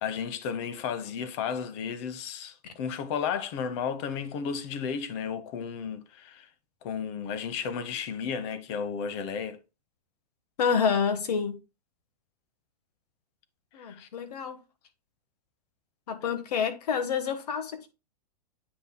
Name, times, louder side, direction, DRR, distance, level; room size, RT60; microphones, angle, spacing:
voice 1, 0.0-6.5 6.8-9.6 13.8-14.1, left 7 dB, 45° left, 1.0 m, -33 dB
voice 2, 10.6-11.6 13.7-14.6 16.1-17.9, left 6 dB, 75° left, 1.4 m, -28 dB
8.6 x 5.4 x 2.2 m
hypercardioid pair, 145°, 21 cm